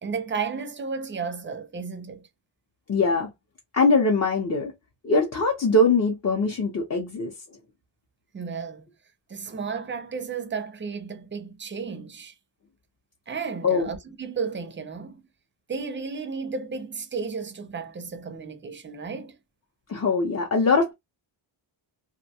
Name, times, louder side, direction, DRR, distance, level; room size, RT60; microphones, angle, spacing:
voice 1, 0.0-2.3 8.3-8.8 9.3-12.3 13.3-15.2 15.7-19.4, right 5 dB, 25° right, 0.4 m, -33 dB
voice 2, 2.9-3.3 3.7-4.7 5.0-7.3 13.6-13.9 19.9-20.9, left 3 dB, 35° left, 0.5 m, -22 dB
2.5 x 2.1 x 2.7 m
wide cardioid pair, 130°, 48 cm